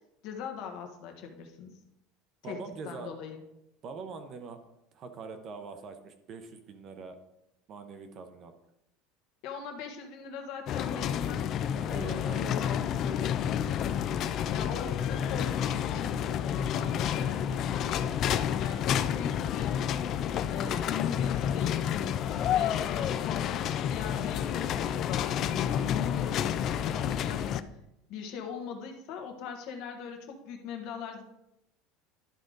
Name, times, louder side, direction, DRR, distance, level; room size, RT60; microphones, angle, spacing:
voice 1, 0.2-1.8 2.4-2.6 2.8-3.4 9.4-11.5 11.8-13.4 14.5-18.2 18.6-19.8 20.5-22.2 22.5-27.4 28.1-31.2, left 6 dB, 50° left, 4 dB, 1.2 m, -40 dB
voice 2, 2.4-3.1 3.8-4.6 4.9-7.2 7.7-8.5 11.7-12.7 14.2-14.4, right 4 dB, 30° right, 7 dB, 0.7 m, -43 dB
sound 1, 10.7-27.6, left 9 dB, 35° left, 0.3 m, -30 dB
11.5 x 4.9 x 3.9 m, 0.84 s
cardioid pair, 175°, 0 cm